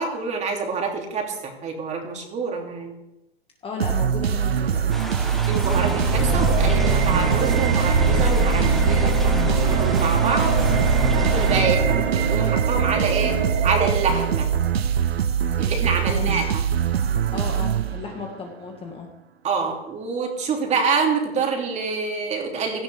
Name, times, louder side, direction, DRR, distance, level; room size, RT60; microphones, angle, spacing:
voice 1, 0.0-2.9 5.5-10.5 11.1-13.4 13.6-14.5 15.6-16.6 19.4-22.8, right 4 dB, 20° right, 2 dB, 2.8 m, -26 dB
voice 2, 3.6-5.1 16.1-16.5 17.3-19.1, left 5 dB, 20° left, 1 dB, 1.7 m, -34 dB
sound 1, 3.8-18.4, right 8 dB, 75° right, 0.8 m, -23 dB
sound 2, 4.9-11.7, equal, ahead, 1.2 m, -34 dB
sound 3, 5.6-14.7, right 3 dB, 45° right, 2.7 m, -23 dB
16.5 x 13.5 x 3.5 m, 0.92 s
hypercardioid pair, 115°, 31 cm